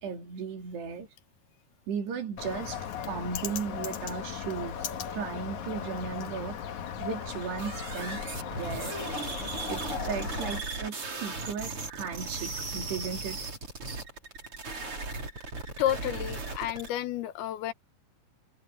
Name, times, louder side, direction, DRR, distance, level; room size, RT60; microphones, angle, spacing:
voice 1, 0.0-1.1 1.9-2.8 3.1-4.9 5.1-6.6 7.0-8.9 9.7-13.4, right 6 dB, 90° right, 5.5 m, -36 dB
Bird, 2.4-10.6, left 8 dB, 60° left, 2.5 m, -37 dB
sound 1, 7.0-16.9, right 3 dB, 35° right, 5.2 m, -37 dB
voice 2, 15.8-17.7, left 12 dB, 75° left, 2.9 m, -31 dB
omnidirectional pair, 4.6 m